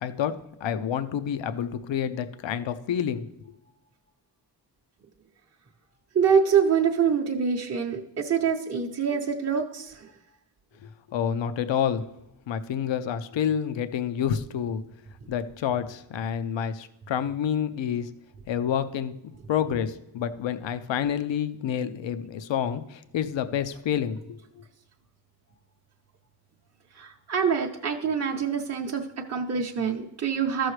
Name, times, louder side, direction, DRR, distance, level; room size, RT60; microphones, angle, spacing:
voice 1, 0.0-3.3 11.1-12.1 12.5-14.8 15.3-18.1 18.5-19.2 19.5-24.2, left 8 dB, 80° left, 11 dB, 0.6 m, -28 dB
voice 2, 6.1-10.1 26.9-30.7, right 6 dB, 35° right, 0 dB, 0.7 m, -25 dB
14.0 x 6.3 x 3.2 m, 0.86 s
wide cardioid pair, 115°, 44 cm